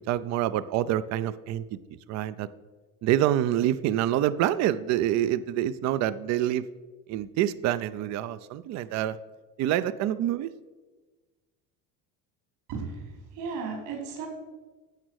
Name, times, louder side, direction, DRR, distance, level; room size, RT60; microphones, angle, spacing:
voice 1, 0.1-1.8 2.1-2.5 3.0-6.6 7.1-9.2 9.6-10.5, right 12 dB, 50° right, 15 dB, 0.5 m, -26 dB
voice 2, 12.7-14.3, right 5 dB, 75° right, 1 dB, 4.5 m, -35 dB
15.0 x 6.1 x 6.4 m, 1.3 s
cardioid pair, 145°, 34 cm